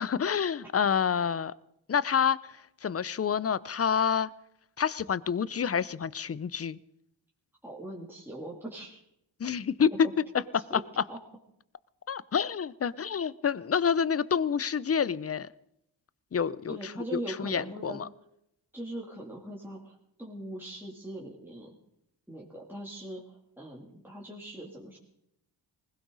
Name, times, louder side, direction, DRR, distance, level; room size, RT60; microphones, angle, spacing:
voice 1, 0.0-1.5 1.9-4.3 4.8-6.8 9.4-10.1 12.1-15.5 16.3-18.1, left 7 dB, 30° left, 20 dB, 0.6 m, -28 dB
voice 2, 7.6-9.0 10.5-10.8 11.1-11.2 16.7-18.0 18.7-21.7 22.3-25.0, right 1 dB, 5° right, -4 dB, 2.8 m, -41 dB
20.0 x 16.5 x 4.0 m, 0.78 s
cardioid pair, 55°, 45 cm